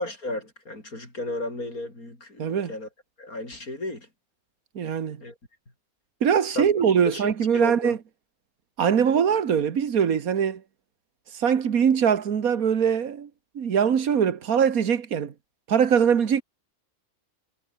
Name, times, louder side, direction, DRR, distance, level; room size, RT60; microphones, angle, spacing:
voice 1, 0.0-2.9 3.2-4.1 5.2-5.3 6.6-6.7 7.1-8.0, left 2 dB, 85° left, 7.7 m, -33 dB
voice 2, 2.4-2.7 4.7-5.2 6.2-8.0 8.8-10.6 11.3-13.3 13.5-15.3 15.7-16.4, right 7 dB, 80° right, 1.9 m, -22 dB
omnidirectional pair, 1.5 m